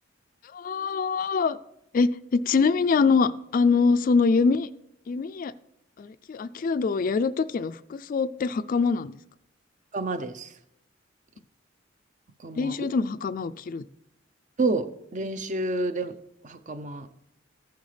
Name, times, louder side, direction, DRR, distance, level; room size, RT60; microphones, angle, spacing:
voice 1, 0.5-1.6 1.9-4.7 5.1-5.5 6.0-9.2 12.6-13.8, left 4 dB, 45° left, 0.3 m, -24 dB
voice 2, 9.9-10.5 12.4-12.7 14.6-16.1 16.4-17.1, right 2 dB, 40° right, 0.6 m, -29 dB
15.0 x 9.4 x 3.3 m
head